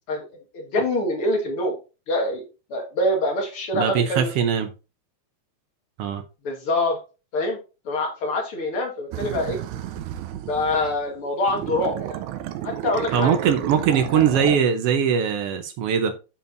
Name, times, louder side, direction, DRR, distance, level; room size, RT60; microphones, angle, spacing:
voice 1, 0.5-1.8 2.1-2.4 2.7-4.3 6.4-7.0 7.3-7.6 7.9-9.6 10.5-12.2 12.6-13.4 14.1-14.2, left 1 dB, 50° left, 2.3 m, -25 dB
voice 2, 3.7-4.7 6.0-6.2 13.1-16.1, right 7 dB, 70° right, 1.5 m, -21 dB
sound 1, 9.1-11.1 11.5-14.6, right 11 dB, 85° right, 2.1 m, -32 dB
12.0 x 4.4 x 2.6 m
omnidirectional pair, 3.4 m